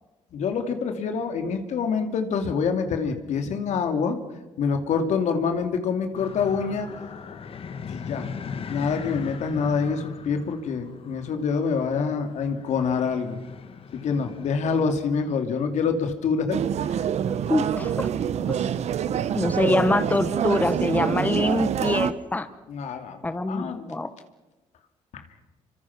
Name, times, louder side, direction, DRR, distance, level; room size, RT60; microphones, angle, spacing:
voice 1, 0.3-4.2 4.6-6.9 7.9-8.3 8.7-13.4 13.9-17.0 22.7-23.9 25.1-25.2, left 5 dB, 70° left, 7 dB, 2.8 m, -26 dB
sound 1, 6.1-14.9, left 5 dB, 50° left, 1.7 m, -39 dB
sound 2, 16.5-22.1, right 9 dB, 65° right, 1.0 m, -26 dB
voice 2, 17.5-18.1 18.5-18.6 19.3-22.5 23.2-24.1, left 2 dB, 15° left, 11 dB, 1.2 m, -24 dB
27.0 x 24.5 x 6.0 m, 1.1 s
cardioid pair, 95°, 12 cm